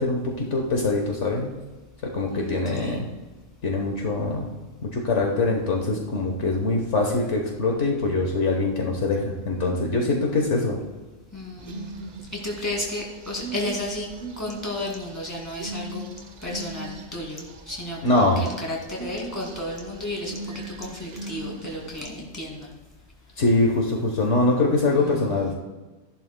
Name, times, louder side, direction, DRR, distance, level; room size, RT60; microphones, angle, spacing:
voice 1, 0.0-1.5 2.1-3.0 3.6-4.5 4.8-10.8 18.0-18.4 23.4-25.6, left 2 dB, 60° left, 0 dB, 1.4 m, -23 dB
voice 2, 2.3-3.1 11.3-11.9 12.3-14.1 14.4-16.1 16.4-22.7 24.8-25.6, left 1 dB, 15° left, -2 dB, 2.3 m, -33 dB
sound 1, 11.6-22.0, right 3 dB, 40° right, 0.7 m, -40 dB
14.5 x 11.0 x 2.2 m, 1.2 s
omnidirectional pair, 1.4 m